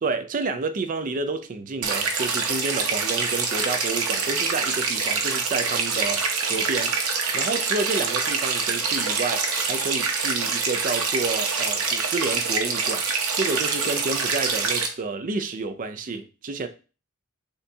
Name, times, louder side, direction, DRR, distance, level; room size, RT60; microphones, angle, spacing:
voice 1, 0.0-7.0 7.3-13.0 13.3-16.7, right 3 dB, 35° right, 0.4 m, -30 dB
sound 1, 1.8-14.9, right 5 dB, 75° right, 0.8 m, -25 dB
6.4 x 2.3 x 2.7 m
head